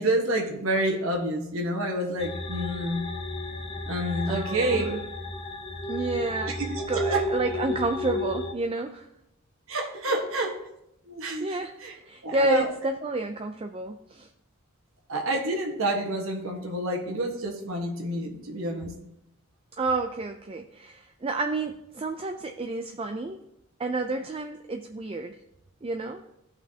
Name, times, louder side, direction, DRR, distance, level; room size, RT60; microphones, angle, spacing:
voice 1, 0.0-3.0 3.9-5.0 6.5-7.2 9.7-10.6 11.1-11.9 12.2-12.7 15.1-18.9, right 1 dB, 85° right, 1 dB, 1.4 m, -28 dB
sound 1, 2.2-8.5, left 1 dB, 25° left, 0.6 m, -33 dB
voice 2, 4.3-5.0 5.9-6.6 6.9-9.1 11.4-14.3 19.8-23.4 23.8-25.4 25.8-26.2, right 2 dB, 25° right, 6 dB, 0.4 m, -30 dB
15.0 x 5.7 x 2.8 m, 0.83 s
head